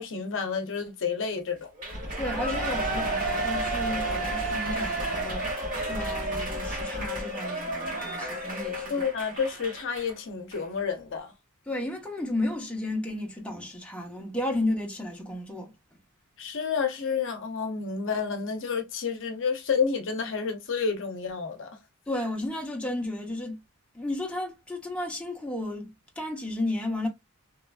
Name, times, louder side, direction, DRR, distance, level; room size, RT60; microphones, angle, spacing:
voice 1, 0.0-1.7 8.9-11.3 16.4-21.8, left 6 dB, 60° left, 0.7 m, -30 dB
Shout / Cheering, 1.8-10.1 10.5-10.6, right 2 dB, 40° right, 1.3 m, -31 dB
sound 1, 1.9-7.2, equal, 55° right, 1.4 m, -37 dB
voice 2, 2.2-8.9 11.7-15.7 22.1-23.6 23.9-27.1, left 1 dB, 5° left, 0.7 m, -33 dB
3.0 x 2.4 x 2.2 m
head